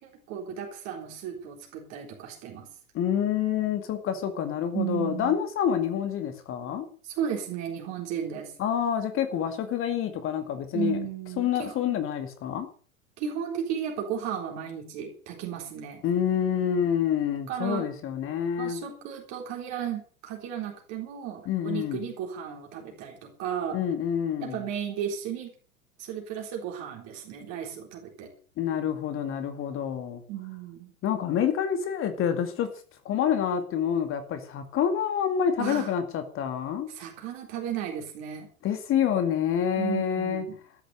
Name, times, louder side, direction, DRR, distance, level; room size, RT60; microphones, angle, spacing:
voice 1, 0.0-2.7 4.7-5.4 7.0-8.5 10.7-11.9 13.2-16.0 17.5-17.9 18.6-23.8 24.4-25.5 26.0-28.3 30.3-30.9 35.6-35.9 36.9-38.5 39.8-40.6, right 9 dB, 40° right, 2 dB, 3.9 m, -34 dB
voice 2, 2.9-6.9 8.6-11.0 11.4-12.7 16.0-18.8 21.5-22.0 23.7-24.6 28.6-30.2 31.0-32.7 33.0-36.9 38.6-40.5, left 8 dB, 30° left, 8 dB, 2.2 m, -27 dB
13.5 x 10.5 x 7.8 m, 0.42 s
figure-of-eight pair, 95°, 43 cm